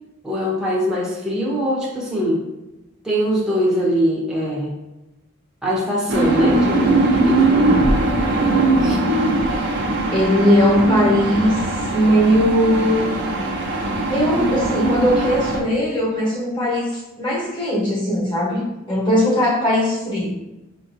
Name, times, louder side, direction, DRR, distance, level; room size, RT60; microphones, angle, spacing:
voice 1, 0.2-2.4 3.0-4.7 5.6-7.5 7.8-7.9 8.8-9.0, equal, 5° right, -5 dB, 0.8 m, -22 dB
sound 1, 6.1-15.6, right 2 dB, 50° right, 0.6 m, -20 dB
voice 2, 10.1-11.6 11.9-13.0 14.1-20.3, equal, 20° left, -6 dB, 1.2 m, -19 dB
5.1 x 2.8 x 2.6 m, 0.98 s
head